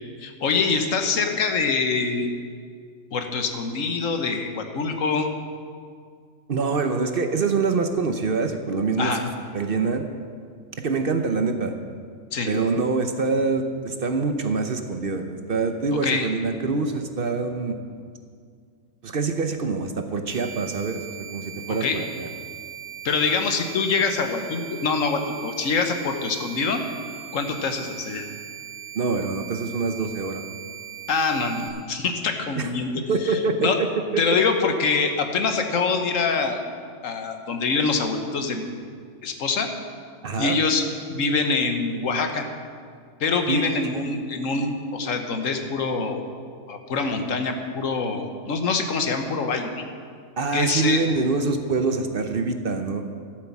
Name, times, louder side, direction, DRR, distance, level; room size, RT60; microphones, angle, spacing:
voice 1, 0.2-2.3 3.1-5.3 9.0-9.2 12.3-12.5 16.0-16.3 21.8-22.0 23.0-26.8 27.3-28.2 31.1-32.9 33.2-33.8 34.2-36.6 37.0-38.8 39.2-39.7 40.4-42.4 43.2-46.2 46.7-49.8 50.5-51.0, left 4 dB, 75° left, 6 dB, 1.5 m, -25 dB
voice 2, 6.5-9.2 9.5-10.1 10.8-11.7 12.5-17.7 19.0-22.3 28.9-30.4 32.6-32.7 33.1-33.9 34.1-34.2 40.2-40.6 43.5-43.6 50.4-53.1, right 4 dB, 50° right, 6 dB, 0.9 m, -25 dB
sound 1, 20.3-31.7, right 10 dB, ahead, 1.7 m, -39 dB
13.0 x 8.1 x 7.2 m, 2.1 s
omnidirectional pair, 1.4 m